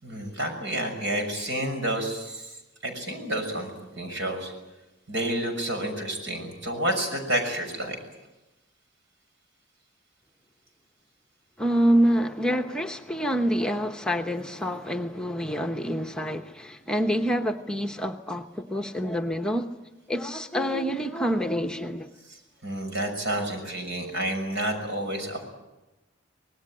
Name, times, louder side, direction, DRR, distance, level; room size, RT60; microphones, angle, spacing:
voice 1, 0.0-3.7 4.0-4.5 5.1-8.0 22.3-22.4 22.6-25.4, right 1 dB, 70° right, 6.4 m, -30 dB
voice 2, 11.6-19.7 20.1-22.1, equal, 5° left, 0.9 m, -26 dB
25.0 x 19.5 x 8.8 m
head